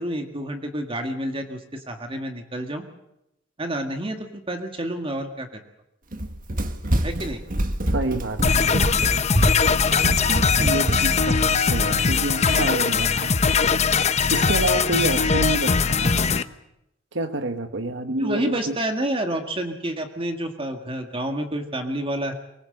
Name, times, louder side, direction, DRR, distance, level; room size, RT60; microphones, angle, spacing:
voice 1, 0.0-2.8 3.6-5.5 7.0-7.4 18.2-22.3, right 1 dB, 30° right, 5 dB, 1.8 m, -29 dB
Run, 6.1-11.3, right 1 dB, 45° right, 1.8 m, -25 dB
voice 2, 7.9-8.8 10.6-13.4 13.9-16.4 17.1-18.8, right 2 dB, 70° right, 8 dB, 1.4 m, -28 dB
sound 1, 8.4-16.4, left 5 dB, 35° left, 0.7 m, -21 dB
23.5 x 20.0 x 7.8 m, 0.86 s
head